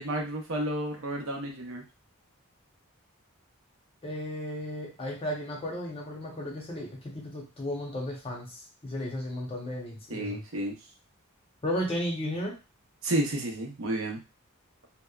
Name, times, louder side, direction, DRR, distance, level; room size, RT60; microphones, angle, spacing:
voice 1, 0.0-1.8 10.1-10.7 13.0-14.2, right 1 dB, 70° right, 1 dB, 0.7 m, -31 dB
voice 2, 4.0-10.4 11.6-12.6, left 1 dB, 25° left, -1 dB, 0.6 m, -34 dB
2.7 x 2.1 x 2.3 m, 0.30 s
head